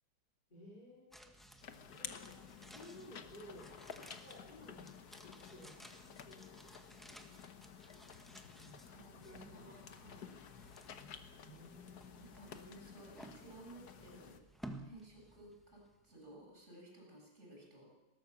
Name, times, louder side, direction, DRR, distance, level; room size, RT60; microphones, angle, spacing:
voice 1, 0.5-1.4 1.8-3.7 4.2-5.0 5.3-6.7 8.6-9.8 10.9-11.1 11.4-12.2, left 1 dB, 20° left, -4 dB, 3.4 m, -57 dB
sound 1, 1.1-16.3 16.6-16.7, right 1 dB, ahead, 1.1 m, -57 dB
sound 2, 1.6-14.4, left 7 dB, 50° left, 1.5 m, -53 dB
voice 2, 8.9-10.4 12.2-14.4 14.8-17.9, right 2 dB, 30° right, -1 dB, 7.7 m, -57 dB
20.5 x 17.5 x 7.3 m, 1.0 s
omnidirectional pair, 2.4 m